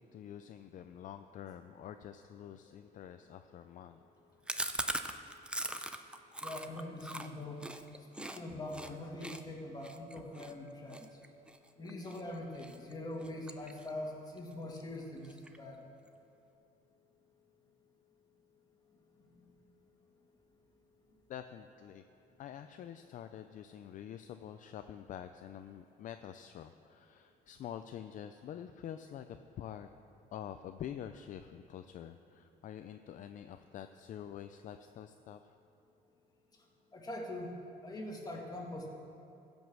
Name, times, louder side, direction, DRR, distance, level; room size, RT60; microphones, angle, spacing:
voice 1, 0.0-4.0 21.3-22.0 22.4-29.9 30.3-35.5, left 10 dB, 50° left, 8 dB, 0.4 m, -47 dB
Chewing mastication, 4.5-8.4 8.7-8.9 9.2-12.2 12.6-12.9 13.2-14.1 14.4-14.5 14.8-14.9 15.2-15.7, right 1 dB, 5° right, 0.5 m, -40 dB
voice 2, 6.4-7.7 8.2-11.2 11.8-15.8 19.4-19.5 36.9-37.5 37.8-38.9, left 1 dB, 25° left, -1 dB, 1.9 m, -43 dB
15.5 x 5.3 x 6.2 m, 2.7 s
cardioid pair, 110°, 17 cm